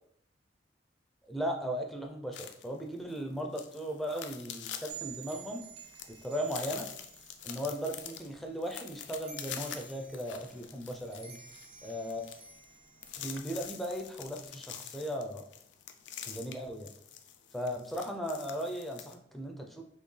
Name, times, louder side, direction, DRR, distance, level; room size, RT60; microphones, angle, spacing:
voice 1, 1.3-5.7 6.1-6.9 7.4-11.4 11.8-12.3 13.2-15.4 16.3-16.9 17.5-19.8, equal, ahead, 1 dB, 0.5 m, -37 dB
sound 1, 2.3-19.1, left 9 dB, 85° left, 0.4 m, -46 dB
sound 2, 4.9-14.5, right 7 dB, 30° right, 0.9 m, -52 dB
4.3 x 3.1 x 3.2 m, 0.65 s
head